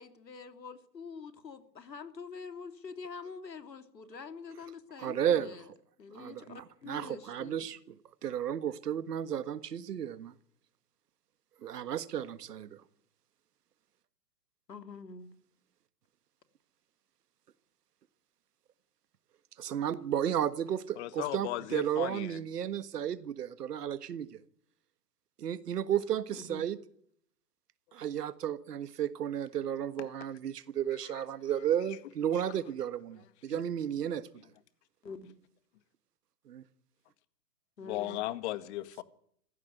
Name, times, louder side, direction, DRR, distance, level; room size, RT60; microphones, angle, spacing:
voice 1, 0.0-5.7 6.0-7.7 14.7-15.3 26.3-26.6 35.0-35.3 37.8-38.2, left 5 dB, 90° left, 3.1 m, -46 dB
voice 2, 5.0-5.5 6.1-7.9 8.2-10.3 11.6-12.8 19.6-24.4 25.4-26.8 27.9-34.3 36.5-36.6, right 9 dB, 70° right, 1.7 m, -33 dB
voice 3, 21.0-22.4 33.5-33.6 37.8-39.0, left 15 dB, 45° left, 1.9 m, -36 dB
26.0 x 15.5 x 9.2 m
hypercardioid pair, 130°, 49 cm